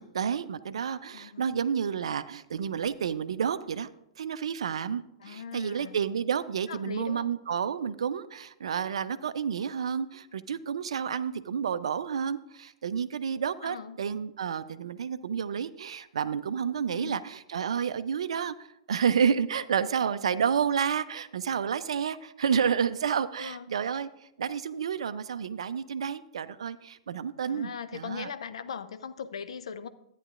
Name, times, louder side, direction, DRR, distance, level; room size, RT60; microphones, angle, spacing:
voice 1, 0.0-3.9 4.2-28.3, right 7 dB, 65° right, 13 dB, 0.4 m, -30 dB
voice 2, 1.1-1.5 5.2-6.0 6.7-7.3 13.6-14.0 16.9-17.2 23.4-23.7 27.5-29.9, left 7 dB, 65° left, 12 dB, 0.5 m, -39 dB
13.5 x 9.0 x 2.4 m, 0.81 s
figure-of-eight pair, 105°, 3 cm